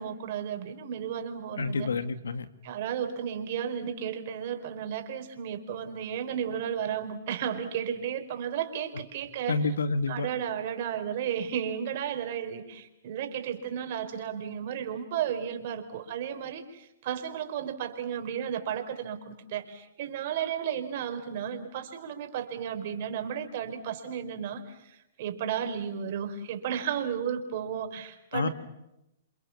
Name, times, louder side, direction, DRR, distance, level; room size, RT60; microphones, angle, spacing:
voice 1, 0.0-1.9 2.6-9.6 10.1-28.5, right 8 dB, 55° right, 6 dB, 4.7 m, -33 dB
voice 2, 1.6-2.5 9.5-10.3 28.3-28.5, left 4 dB, 90° left, 11 dB, 2.3 m, -28 dB
29.0 x 27.0 x 7.4 m, 0.87 s
hypercardioid pair, 135°, 0 cm